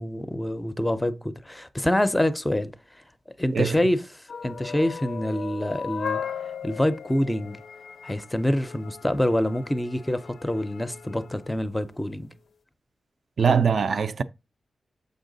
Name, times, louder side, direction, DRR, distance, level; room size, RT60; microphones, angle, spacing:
voice 1, 0.0-2.7 3.4-6.2 6.6-7.6 8.0-12.3, left 1 dB, 5° left, 0.5 m, -26 dB
sound 1, 4.3-11.8, left 7 dB, 60° left, 0.4 m, -38 dB
voice 2, 13.4-14.2, right 6 dB, 55° right, 0.4 m, -22 dB
7.2 x 5.3 x 3.9 m
wide cardioid pair, 160°, 0 cm